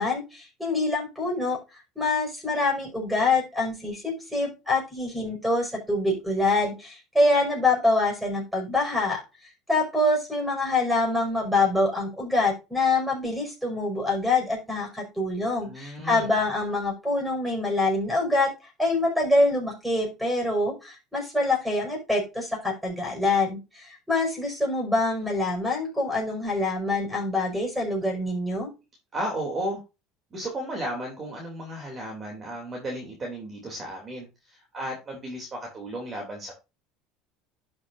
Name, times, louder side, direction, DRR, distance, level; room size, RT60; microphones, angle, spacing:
voice 1, 0.0-1.6 2.0-9.2 9.7-18.5 18.8-28.7, left 2 dB, 5° right, 2 dB, 5.5 m, -25 dB
voice 2, 15.6-16.3 29.1-29.8 30.3-36.5, right 1 dB, 25° right, 0 dB, 2.9 m, -34 dB
12.0 x 6.4 x 2.6 m, 0.27 s
supercardioid pair, 130°, 0 cm